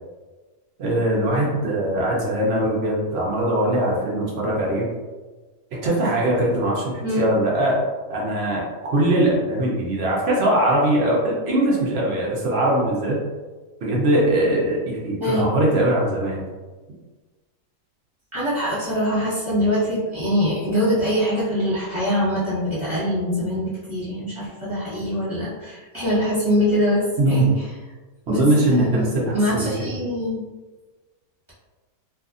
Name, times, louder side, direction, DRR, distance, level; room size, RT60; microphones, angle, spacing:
voice 1, 0.8-4.9 5.8-7.8 8.1-13.2 13.8-16.4 27.2-27.5 28.3-29.7, right 1 dB, 70° right, -4 dB, 0.6 m, -21 dB
voice 2, 18.3-27.5 28.3-30.4, equal, 20° right, -11 dB, 1.0 m, -23 dB
2.7 x 2.5 x 2.4 m, 1.3 s
omnidirectional pair, 1.8 m